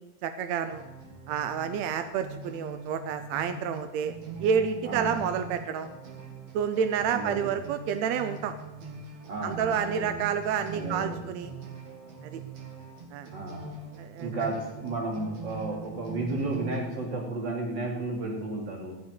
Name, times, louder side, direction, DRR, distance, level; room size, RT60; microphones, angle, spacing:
voice 1, 0.2-0.8 1.3-4.1 4.4-5.9 6.5-8.6 9.4-11.5 12.2-12.4 13.1-13.3 14.0-14.3, right 7 dB, 85° right, 9 dB, 1.5 m, -29 dB
sound 1, 0.7-16.8, right 4 dB, 55° right, 2.9 m, -42 dB
voice 2, 7.1-7.6 9.3-10.2 10.7-11.2 13.3-13.7 14.2-18.9, right 2 dB, 35° right, 0 dB, 2.8 m, -33 dB
15.5 x 5.6 x 9.5 m, 1.1 s
omnidirectional pair, 4.0 m